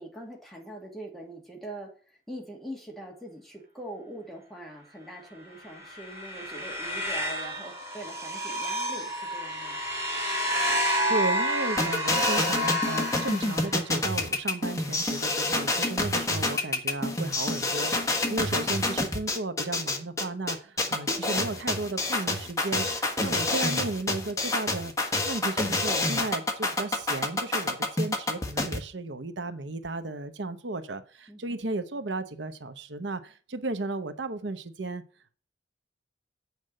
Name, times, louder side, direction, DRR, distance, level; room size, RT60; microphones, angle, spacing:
voice 1, 0.0-9.8 31.3-31.6, right 1 dB, ahead, 2.3 m, -43 dB
sound 1, 5.7-14.0, equal, 15° right, 3.6 m, -30 dB
voice 2, 11.1-24.9 25.2-35.0, right 2 dB, 85° right, 0.9 m, -34 dB
sound 2, 11.8-28.8, left 2 dB, 15° left, 1.4 m, -27 dB
8.2 x 5.2 x 7.6 m
head